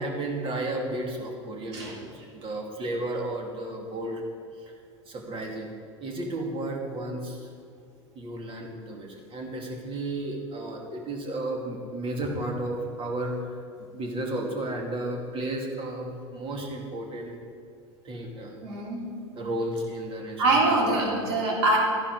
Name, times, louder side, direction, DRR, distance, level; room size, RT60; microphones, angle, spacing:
voice 1, 0.0-4.2 5.1-5.7 6.0-7.5 8.1-17.4 18.0-18.6 19.4-21.2, right 1 dB, 35° right, 1 dB, 2.7 m, -33 dB
voice 2, 18.6-19.0 20.4-21.8, right 2 dB, 65° right, -2 dB, 3.6 m, -23 dB
13.5 x 11.0 x 5.0 m, 2.5 s
hypercardioid pair, 80°, 15 cm